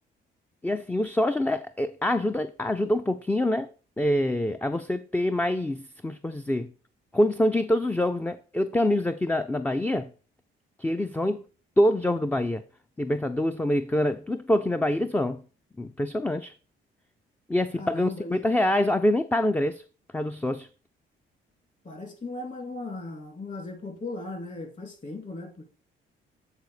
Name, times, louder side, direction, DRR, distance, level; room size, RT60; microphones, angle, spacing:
voice 1, 0.6-3.7 4.0-6.7 7.1-10.1 10.8-11.4 11.8-12.6 13.0-15.4 15.8-16.5 17.5-19.8 20.1-20.7, left 1 dB, 10° left, 0.3 m, -25 dB
voice 2, 17.8-18.4 21.8-25.7, left 2 dB, 35° left, 2.7 m, -37 dB
8.3 x 3.8 x 4.8 m
cardioid pair, 90°, 21 cm